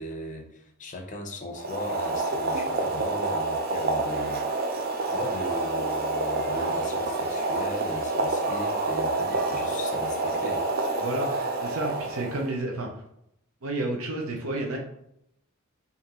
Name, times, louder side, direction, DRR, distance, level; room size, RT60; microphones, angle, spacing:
voice 1, 0.0-4.5 5.1-10.7, left 1 dB, 35° left, 2 dB, 0.7 m, -38 dB
Boiling, 1.5-12.5, right 2 dB, 45° right, 0.6 m, -28 dB
voice 2, 11.0-12.9 13.6-14.8, right 2 dB, 90° right, 1 dB, 0.8 m, -31 dB
5.2 x 2.7 x 3.0 m, 0.75 s
head